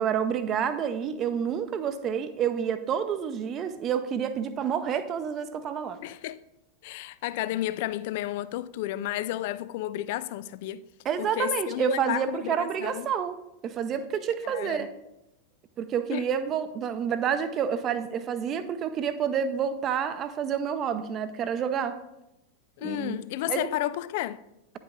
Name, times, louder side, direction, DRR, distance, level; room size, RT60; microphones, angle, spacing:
voice 1, 0.0-6.0 11.0-14.9 15.8-22.0 22.8-23.2 23.5-23.7, right 8 dB, 30° right, 0.6 m, -29 dB
voice 2, 6.0-6.4 6.8-10.8 11.2-13.1 14.4-14.9 16.1-16.2 22.8-24.4, left 14 dB, 50° left, 0.3 m, -32 dB
9.6 x 5.6 x 3.7 m
figure-of-eight pair, 90°, 0 cm